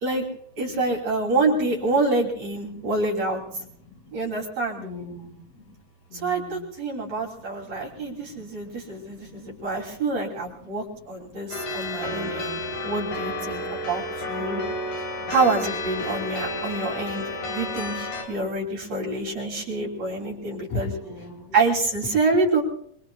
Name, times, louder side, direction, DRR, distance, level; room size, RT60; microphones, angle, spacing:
voice 1, 0.6-3.4 4.1-4.8 6.2-14.6 15.3-20.9 21.5-22.6, right 3 dB, 55° right, 0 dB, 4.0 m, -26 dB
voice 2, 4.8-5.3 6.1-6.6 20.7-21.5 22.0-22.2, left 3 dB, 50° left, 0 dB, 4.5 m, -35 dB
sound 1, 11.5-18.2, left 1 dB, 85° left, 4.7 m, -31 dB
27.0 x 22.0 x 2.3 m, 0.68 s
omnidirectional pair, 3.8 m